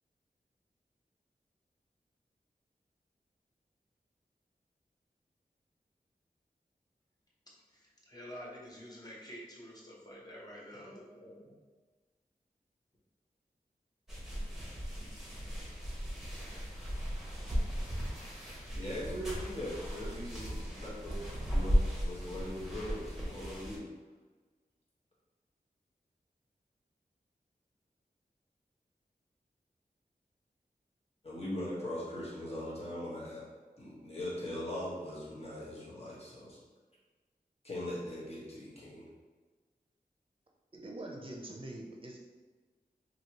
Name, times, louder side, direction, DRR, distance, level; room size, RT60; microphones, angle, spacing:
voice 1, 7.5-11.5, equal, 25° left, -4 dB, 0.9 m, -49 dB
sound 1, 14.1-23.8, equal, 5° right, 1.0 m, -36 dB
voice 2, 18.8-21.2 21.5-23.8 31.2-33.4 33.8-36.6 37.6-39.1, left 1 dB, 40° left, -7 dB, 1.3 m, -40 dB
voice 3, 40.7-42.2, right 1 dB, 35° right, 0 dB, 0.6 m, -44 dB
3.0 x 2.8 x 2.9 m, 1.3 s
wide cardioid pair, 55°, 16 cm